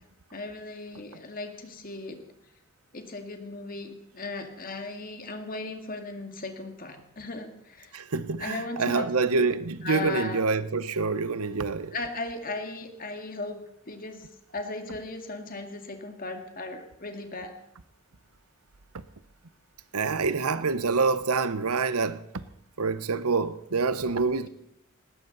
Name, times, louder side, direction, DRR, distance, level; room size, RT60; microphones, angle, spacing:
voice 1, 0.3-2.2 2.9-7.9 8.4-9.1 9.8-10.4 11.9-14.3 14.5-17.6, left 3 dB, 40° left, 2.0 m, -37 dB
voice 2, 7.9-11.9 19.9-22.4 22.8-24.5, right 4 dB, 85° right, 0.9 m, -26 dB
19.5 x 17.0 x 4.0 m
head